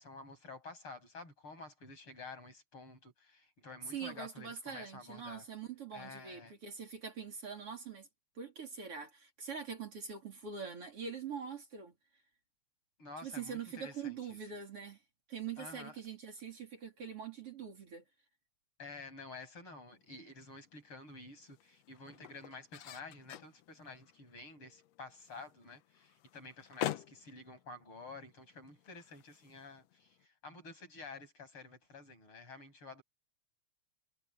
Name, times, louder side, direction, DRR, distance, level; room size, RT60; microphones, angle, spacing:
voice 1, 0.0-5.5 5.9-6.5 13.0-14.4 15.6-16.0 18.8-33.0, left 3 dB, 45° left, 9.0 m, -50 dB
voice 2, 3.9-8.1 8.4-11.9 13.2-15.0 15.3-18.0, right 6 dB, 50° right, 4.1 m, -43 dB
sound 1, 19.9-30.3, left 13 dB, 70° left, 1.8 m, -47 dB
omnidirectional pair, 3.3 m